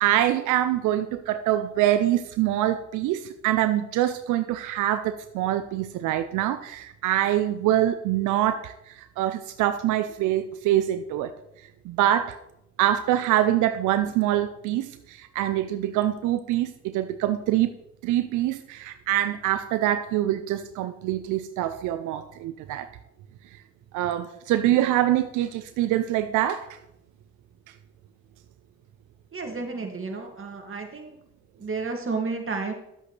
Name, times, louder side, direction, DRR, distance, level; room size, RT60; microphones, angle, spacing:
voice 1, 0.0-11.3 11.8-12.4 12.8-17.7 18.0-22.9 23.9-26.8, right 13 dB, 80° right, 10 dB, 0.5 m, -25 dB
voice 2, 29.3-31.2 31.6-32.7, right 4 dB, 45° right, 3 dB, 2.1 m, -31 dB
11.0 x 7.9 x 3.2 m, 0.83 s
supercardioid pair, 50°, 30 cm